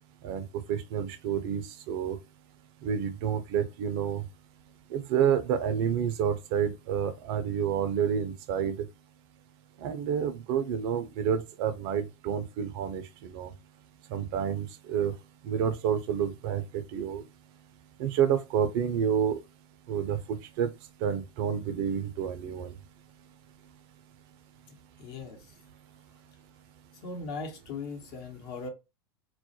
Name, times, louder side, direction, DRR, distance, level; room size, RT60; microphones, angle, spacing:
voice 1, 0.2-2.2 2.8-4.2 4.9-8.8 9.8-13.5 14.1-15.1 15.4-16.6 16.9-17.2 18.0-19.4 19.9-20.7 21.0-22.7, right 8 dB, 55° right, 0.4 m, -29 dB
voice 2, 24.7-25.6 27.0-28.7, left 4 dB, 55° left, 0.9 m, -39 dB
2.3 x 2.1 x 2.8 m
hypercardioid pair, 95°, 14 cm